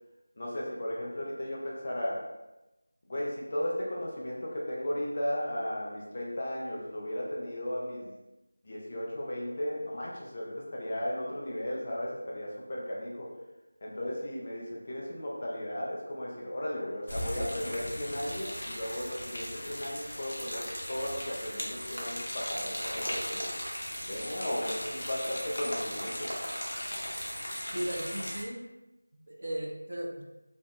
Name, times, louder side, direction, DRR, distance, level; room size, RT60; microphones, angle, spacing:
voice 1, 0.4-2.2 3.1-8.1 8.6-13.3 13.8-23.5 24.1-26.3, left 1 dB, 20° left, -4 dB, 0.3 m, -35 dB
sound 1, 17.1-28.4, equal, 70° left, 0.6 m, -37 dB
voice 2, 27.7-28.6 29.1-30.2, right 1 dB, 60° right, 0 dB, 0.5 m, -36 dB
2.6 x 2.1 x 2.2 m, 0.99 s
figure-of-eight pair, 180°, 0 cm